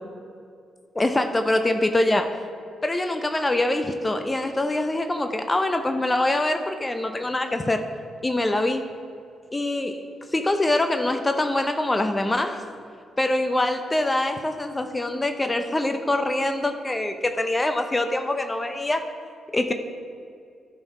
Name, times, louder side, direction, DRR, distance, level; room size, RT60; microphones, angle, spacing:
voice 1, 0.9-2.3 2.8-7.8 8.2-8.8 9.5-10.0 10.3-12.6 13.2-19.0 19.5-19.7, left 1 dB, 25° left, 7 dB, 0.6 m, -24 dB
11.0 x 4.6 x 4.5 m, 2.3 s
hypercardioid pair, 50°, 0 cm